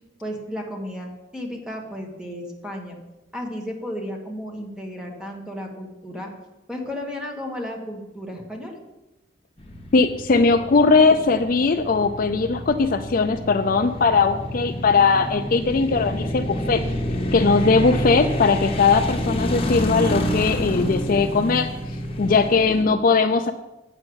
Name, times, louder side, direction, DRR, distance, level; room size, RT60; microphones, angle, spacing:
voice 1, 0.2-3.0 3.3-6.3 6.7-8.8 22.3-22.6, equal, 5° right, 1 dB, 1.6 m, -33 dB
sound 1, 9.6-22.8, equal, 30° left, 1.3 m, -28 dB
voice 2, 9.9-16.8 17.3-21.7 22.2-23.5, left 4 dB, 45° left, 8 dB, 0.4 m, -19 dB
8.7 x 5.9 x 7.8 m, 1.0 s
head